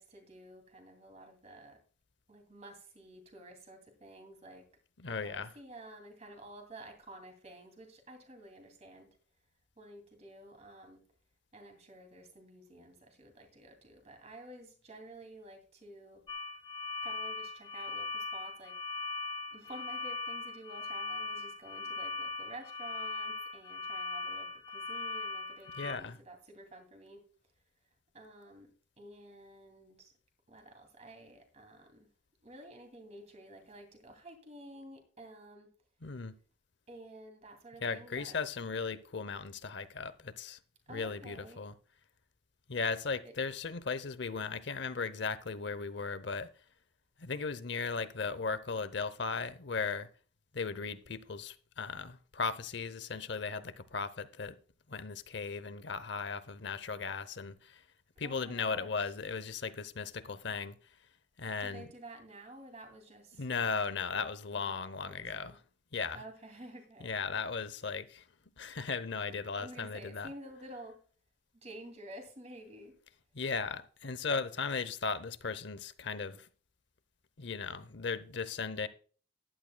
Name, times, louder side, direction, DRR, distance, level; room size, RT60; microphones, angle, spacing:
voice 1, 0.0-1.8 2.3-4.7 5.0-9.1 9.8-11.0 11.5-16.2 17.0-18.8 19.5-27.2 28.1-28.7 29.0-30.1 30.5-32.1 32.4-35.7 36.9-38.4 40.9-41.6 43.2-43.3 58.2-59.1 61.6-63.4 64.1-64.3 64.6-64.7 65.1-65.6 66.1-67.1 69.6-71.0 71.5-72.9, right 1 dB, 35° right, 2.6 m, -51 dB
voice 2, 5.0-5.5 25.8-26.2 36.0-36.4 37.8-40.6 40.9-41.7 42.7-46.5 47.2-50.1 50.5-54.6 54.9-57.8 58.2-60.8 61.4-61.9 63.4-65.6 65.9-66.2 67.0-68.2 68.6-70.3 73.3-76.5 77.4-78.9, left 4 dB, 60° left, 0.8 m, -37 dB
sound 1, 16.3-25.9, left 3 dB, 25° left, 1.1 m, -39 dB
15.0 x 11.0 x 2.2 m
head